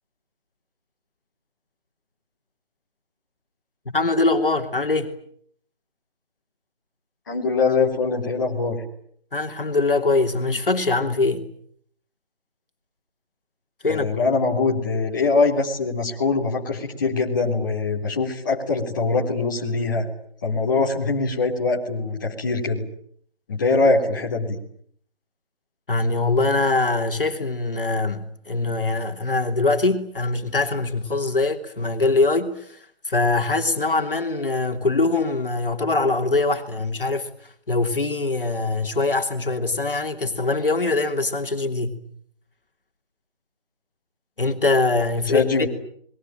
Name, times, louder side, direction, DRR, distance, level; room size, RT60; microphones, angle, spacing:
voice 1, 3.8-5.1 9.3-11.5 13.8-14.1 25.9-42.0 44.4-45.7, left 3 dB, 60° left, 4 dB, 3.1 m, -23 dB
voice 2, 7.3-8.8 13.9-20.1 20.4-22.8 23.5-24.6 45.3-45.7, left 3 dB, 20° left, -2 dB, 3.6 m, -22 dB
29.5 x 21.5 x 9.0 m, 0.65 s
figure-of-eight pair, 170°, 31 cm